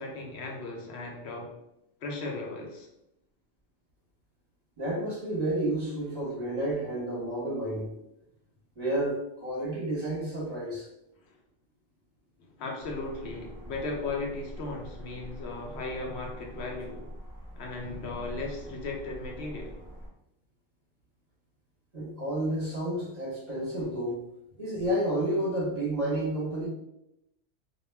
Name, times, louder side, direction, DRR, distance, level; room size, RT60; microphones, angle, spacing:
voice 1, 0.0-1.5 2.0-2.9 11.3-11.4 12.4-17.1 17.6-19.7, left 3 dB, 70° left, 0 dB, 0.8 m, -36 dB
voice 2, 4.8-7.9 8.8-10.9 21.9-24.2 24.6-26.7, right 1 dB, 40° right, -5 dB, 0.8 m, -30 dB
sound 1, 12.8-20.1, equal, 10° left, 0.8 m, -44 dB
2.2 x 2.1 x 3.1 m, 0.82 s
omnidirectional pair, 1.2 m